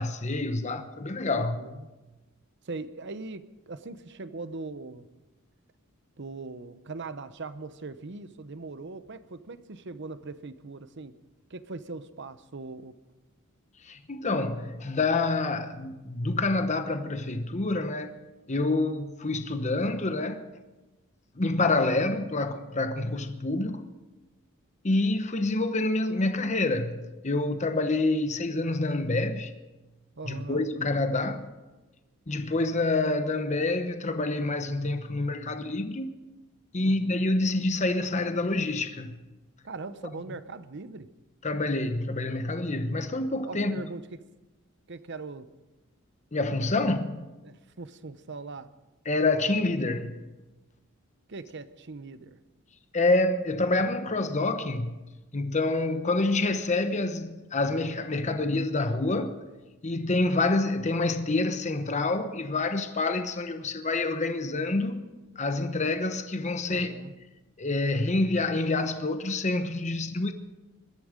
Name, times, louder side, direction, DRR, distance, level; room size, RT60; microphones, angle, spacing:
voice 1, 0.0-1.6 13.8-18.1 18.5-20.4 21.4-23.9 24.8-29.5 30.2-31.5 32.3-36.1 36.7-39.2 41.4-43.8 46.3-47.2 49.1-50.2 52.9-55.0 55.3-59.3 59.8-65.0 65.4-66.9 67.6-70.3, left 2 dB, 35° left, 1.0 m, -27 dB
voice 2, 1.3-1.9 2.6-5.1 6.2-11.2 11.5-12.9 30.2-30.6 35.6-35.7 36.8-37.2 39.6-41.1 43.4-44.1 44.9-45.5 47.4-48.7 51.3-52.4 66.7-67.1, right 3 dB, 55° right, 0.9 m, -40 dB
21.0 x 12.5 x 5.1 m
head